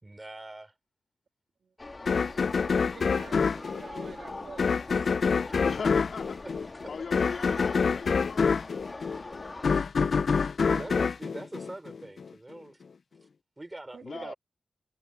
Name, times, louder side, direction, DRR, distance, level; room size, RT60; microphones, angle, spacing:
voice 1, 0.0-0.7 4.9-5.4 6.8-6.9 10.7-12.8 13.2-13.3 13.6-14.3, right 2 dB, 20° right, 4.1 m, -43 dB
sound 1, 1.8-9.7, left 2 dB, 30° left, 2.3 m, -43 dB
sound 2, 2.1-12.3, left 5 dB, 65° left, 0.4 m, -27 dB
voice 2, 2.6-4.8 10.6-10.9 13.9-14.3, right 5 dB, 70° right, 2.2 m, -47 dB
voice 3, 5.6-6.4 6.9-8.9 9.1-9.4 14.0-14.3, left 5 dB, 85° left, 3.0 m, -40 dB
wide cardioid pair, 145°, 0 cm